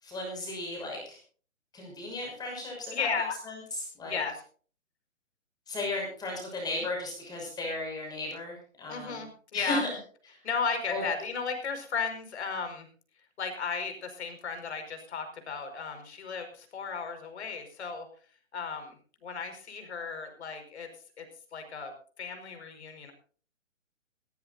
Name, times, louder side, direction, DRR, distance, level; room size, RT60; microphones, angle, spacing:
voice 1, 0.0-1.2 1.7-3.1 3.4-3.6 4.0-4.2 5.7-9.2 9.5-9.9 10.9-11.0, left 2 dB, 10° left, -1 dB, 6.1 m, -35 dB
voice 2, 2.9-3.3 4.0-4.4 6.7-6.8 8.9-9.8 10.4-12.9 13.4-18.1 18.5-19.0 19.2-20.9 21.2-21.3 21.5-21.9 22.2-23.1, left 5 dB, 55° left, 6 dB, 5.2 m, -34 dB
19.0 x 17.0 x 2.7 m, 0.42 s
hypercardioid pair, 145°, 39 cm